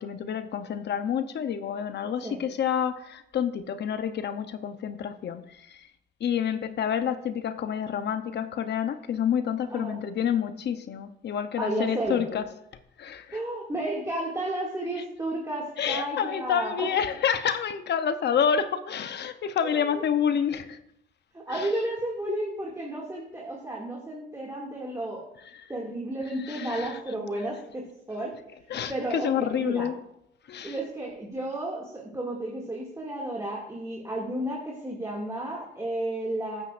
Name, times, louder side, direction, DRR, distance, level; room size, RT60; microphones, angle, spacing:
voice 1, 0.0-5.4 5.7-5.8 6.2-12.5 13.0-13.4 15.8-20.8 21.5-21.7 26.4-27.0 28.7-30.0 30.5-30.7, left 8 dB, 60° left, 10 dB, 0.8 m, -28 dB
voice 2, 11.6-12.2 13.3-16.9 19.6-20.0 21.3-25.3 25.7-28.3 28.7-29.3 29.6-29.9 30.6-36.6, right 1 dB, 15° right, -4 dB, 2.3 m, -32 dB
13.0 x 10.0 x 2.6 m, 0.76 s
cardioid pair, 90°, 20 cm